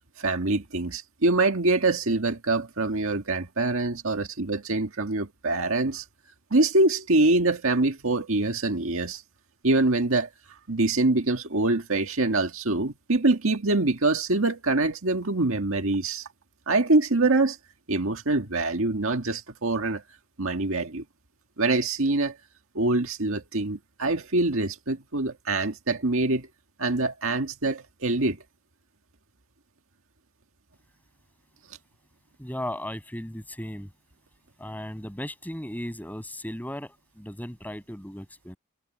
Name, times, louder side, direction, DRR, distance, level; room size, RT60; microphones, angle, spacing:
voice 1, 0.2-6.0 6.5-9.2 9.6-10.3 10.7-16.2 16.7-17.6 17.9-20.0 20.4-21.0 21.6-22.3 22.8-26.4 26.8-28.4, right 2 dB, 65° right, 2.0 m, -24 dB
voice 2, 32.4-33.9 34.6-38.6, left 1 dB, 10° left, 7.3 m, -36 dB
head